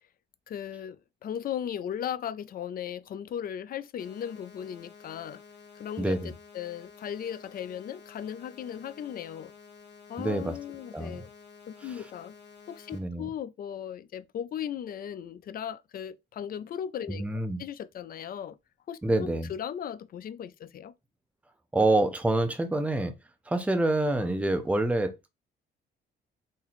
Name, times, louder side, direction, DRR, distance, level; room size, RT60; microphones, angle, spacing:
voice 1, 0.5-5.4 5.8-9.5 10.1-11.3 11.7-12.3 12.7-17.2 17.6-18.6 18.9-20.9, left 9 dB, 50° left, 0.4 m, -37 dB
sound 1, 4.0-13.0, left 6 dB, 65° left, 1.0 m, -52 dB
voice 2, 6.0-6.3 10.2-10.5 10.9-11.2 12.9-13.3 17.1-17.6 19.0-19.5 21.7-23.1 23.5-25.3, right 2 dB, 5° right, 0.6 m, -27 dB
2.9 x 2.6 x 4.1 m
cardioid pair, 90°, 20 cm